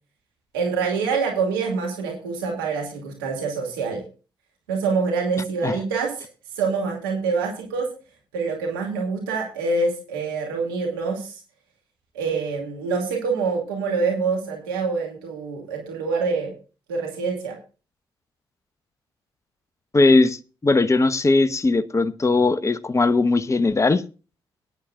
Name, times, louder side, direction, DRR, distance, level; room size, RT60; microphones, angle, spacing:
voice 1, 0.5-4.0 4.7-6.3 6.6-7.9 8.3-11.4 12.1-16.5 16.9-17.6, right 4 dB, 90° right, 2.5 m, -25 dB
voice 2, 19.9-24.0, left 3 dB, 25° left, 1.0 m, -19 dB
17.5 x 10.5 x 2.4 m
hypercardioid pair, 45°, 11 cm